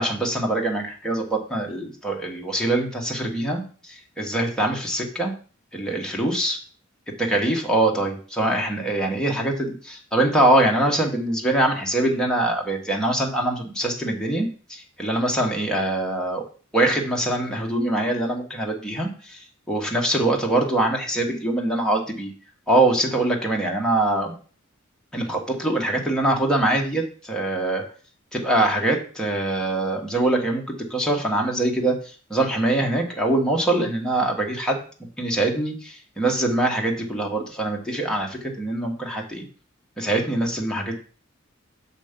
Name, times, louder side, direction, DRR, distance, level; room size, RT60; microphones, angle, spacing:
voice 1, 0.0-5.3 5.7-6.6 7.2-16.4 16.7-22.3 22.7-24.3 25.1-27.8 28.3-30.6 30.9-34.8 35.2-39.4 40.0-40.9, right 1 dB, 5° left, -1 dB, 1.4 m, -23 dB
6.9 x 5.2 x 5.2 m, 0.40 s
head